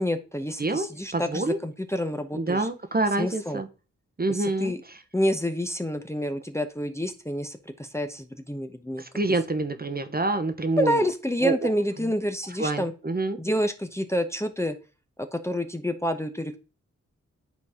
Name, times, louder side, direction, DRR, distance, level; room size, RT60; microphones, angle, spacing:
voice 1, 0.0-2.7 3.2-3.6 4.3-4.8 5.1-9.0 10.8-12.9 13.4-14.8 15.3-16.6, equal, 10° left, 6 dB, 0.9 m, -28 dB
voice 2, 1.1-1.6 2.3-3.7 4.2-4.7 9.0-11.1 11.4-11.7 12.0-12.1 12.6-13.4, right 2 dB, 30° right, 9 dB, 1.1 m, -27 dB
9.3 x 4.0 x 3.6 m, 0.33 s
cardioid pair, 45°, 30 cm